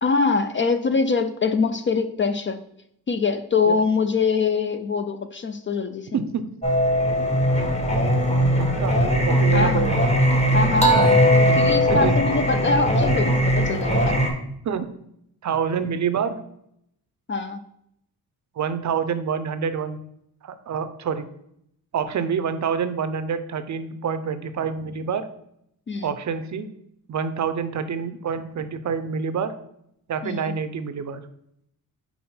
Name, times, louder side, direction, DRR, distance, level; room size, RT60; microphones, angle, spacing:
voice 1, 0.0-2.6 3.1-6.2 9.5-9.9 10.5-11.2 11.5-14.2 17.3-17.6 25.9-26.1 30.2-30.5, left 4 dB, 30° left, 9 dB, 0.4 m, -23 dB
voice 2, 6.1-6.5 8.4-9.0 9.3-10.0 11.0-11.1 11.5-12.1 14.6-14.9 15.4-16.4 18.6-20.0 20.4-21.2 21.9-25.2 26.0-26.7 27.1-29.5 30.1-31.2, right 6 dB, 50° right, 11 dB, 0.5 m, -27 dB
Singing, 6.6-14.3, equal, 15° left, 1.0 m, -19 dB
5.5 x 4.2 x 4.3 m, 0.75 s
wide cardioid pair, 125°, 38 cm